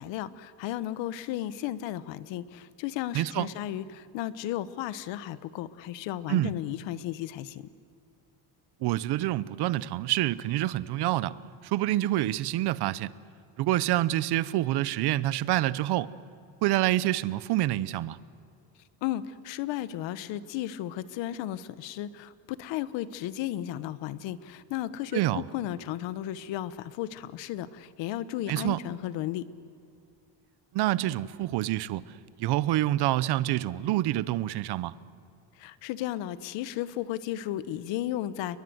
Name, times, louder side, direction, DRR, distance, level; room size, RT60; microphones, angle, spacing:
voice 1, 0.0-7.6 19.0-29.4 35.6-38.6, left 13 dB, 90° left, 1.2 m, -34 dB
voice 2, 3.1-3.5 6.3-6.5 8.8-11.3 11.6-13.1 13.6-16.1 16.6-18.2 25.1-25.4 28.5-28.8 30.7-32.0 32.4-34.9, right 15 dB, 65° right, 0.8 m, -27 dB
29.0 x 22.0 x 7.9 m
cardioid pair, 160°, 43 cm